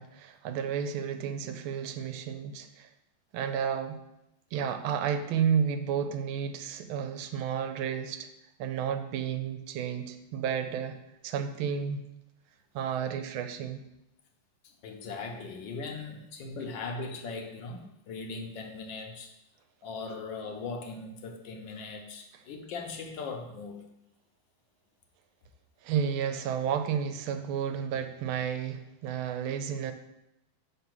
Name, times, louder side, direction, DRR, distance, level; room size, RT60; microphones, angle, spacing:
voice 1, 0.0-2.9 3.3-4.0 4.5-8.3 8.6-11.0 11.2-12.0 12.7-13.8 25.8-29.9, right 7 dB, 90° right, 8 dB, 1.4 m, -31 dB
voice 2, 14.6-19.3 19.8-23.8, left 4 dB, 70° left, 3 dB, 1.4 m, -39 dB
5.4 x 3.8 x 5.9 m, 0.85 s
omnidirectional pair, 2.3 m